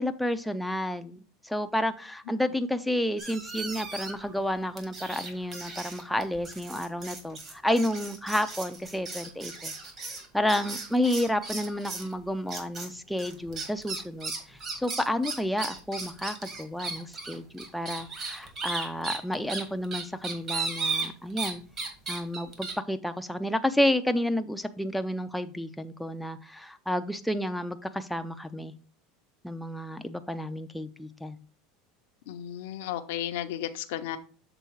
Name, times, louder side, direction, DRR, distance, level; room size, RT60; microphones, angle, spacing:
voice 1, 0.0-9.7 10.3-21.6 22.1-28.7 29.4-31.4, left 1 dB, ahead, 8 dB, 0.5 m, -30 dB
sound 1, 3.2-4.3 4.8-12.1 12.5-12.9 13.2-21.5 21.8-22.7, right 4 dB, 30° right, 1.7 m, -36 dB
voice 2, 32.3-34.2, left 12 dB, 75° left, 6 dB, 0.6 m, -34 dB
7.0 x 3.8 x 4.5 m, 0.39 s
supercardioid pair, 140°, 0 cm